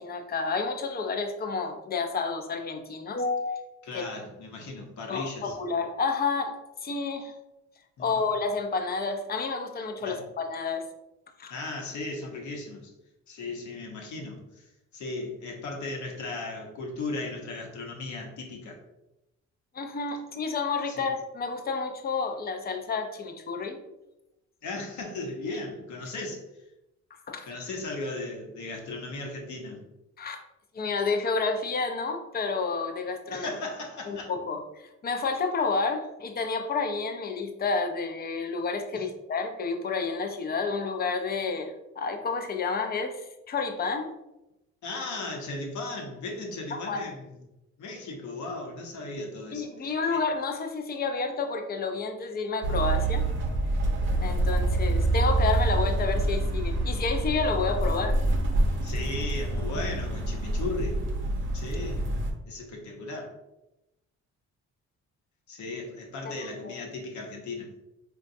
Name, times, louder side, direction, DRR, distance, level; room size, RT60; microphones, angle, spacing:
voice 1, 0.0-3.6 3.9-4.1 5.1-6.5 6.8-7.3 8.0-10.8 11.4-11.5 19.7-23.8 27.1-27.6 30.2-30.4 30.7-33.5 34.1-34.6 35.0-44.1 46.7-47.0 49.5-53.2 54.2-58.2 66.3-66.4 66.6-66.7, left 4 dB, 30° left, 5 dB, 0.5 m, -30 dB
voice 2, 3.8-5.6 8.0-8.2 10.0-10.2 11.5-12.9 13.3-14.7 14.9-18.8 20.9-21.1 24.6-26.4 27.5-29.8 33.3-34.3 38.9-39.1 44.8-47.3 47.8-50.2 58.8-61.0 61.5-62.1 62.5-63.4 65.5-67.7, left 2 dB, 70° left, 1 dB, 0.8 m, -36 dB
sound 1, 52.6-62.3, right 2 dB, 40° right, 0.6 m, -26 dB
3.7 x 2.3 x 2.6 m, 0.94 s
cardioid pair, 90°, 30 cm